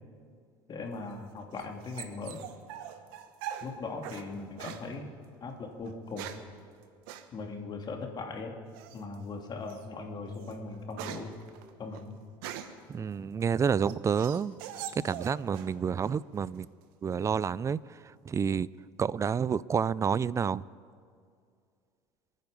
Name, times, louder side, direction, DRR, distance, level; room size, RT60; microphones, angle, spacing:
voice 1, 0.7-2.4 3.6-5.1 5.4-6.3 7.3-8.6 8.9-11.4 11.8-12.2, left 3 dB, 40° left, 2.8 m, -39 dB
sound 1, 1.0-4.3 4.6-4.9 5.8-6.5 7.1-7.3 8.7-9.1 9.7-9.8 10.3-12.9 13.4-15.7 16.0-16.6, right 10 dB, 80° right, 1.1 m, -43 dB
voice 2, 12.9-16.7 17.0-18.7 19.0-20.6, right 6 dB, 25° right, 0.4 m, -29 dB
28.0 x 9.4 x 5.3 m
supercardioid pair, 85°, 11 cm